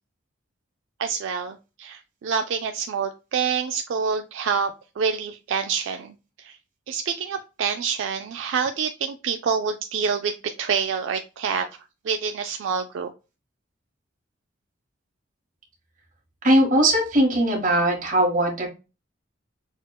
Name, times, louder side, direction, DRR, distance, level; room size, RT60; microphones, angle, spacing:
voice 1, 1.0-6.6 6.9-11.7 12.0-13.1, right 6 dB, 70° right, 6 dB, 0.3 m, -27 dB
voice 2, 16.4-18.7, right 1 dB, 40° right, 0 dB, 1.2 m, -20 dB
6.2 x 2.1 x 2.2 m, 0.30 s
head